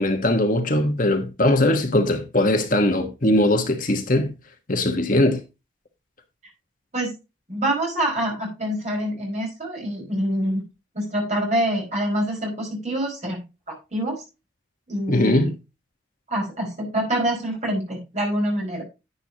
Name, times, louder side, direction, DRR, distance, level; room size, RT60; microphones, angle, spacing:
voice 1, 0.0-4.3 4.7-5.4 15.1-15.6, left 1 dB, 40° left, 1.3 m, -20 dB
voice 2, 7.5-10.6 10.9-13.4 13.7-14.2 14.9-15.5 16.3-18.8, right 1 dB, 35° right, 5.3 m, -26 dB
11.0 x 8.9 x 2.8 m
head